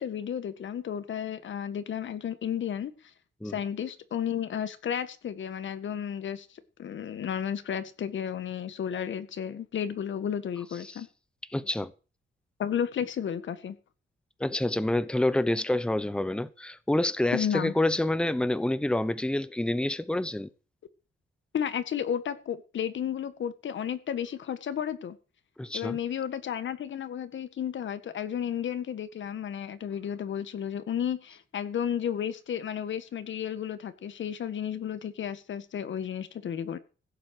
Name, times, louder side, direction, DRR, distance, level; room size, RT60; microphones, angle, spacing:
voice 1, 0.0-2.9 3.4-6.5 6.8-11.1 12.6-13.7 17.3-17.7 21.5-25.2 25.7-36.8, left 9 dB, 70° left, 1.7 m, -32 dB
voice 2, 11.5-11.9 14.4-20.5 25.6-26.0, left 1 dB, 5° left, 0.9 m, -27 dB
16.0 x 7.7 x 6.6 m
cardioid pair, 110°, 20 cm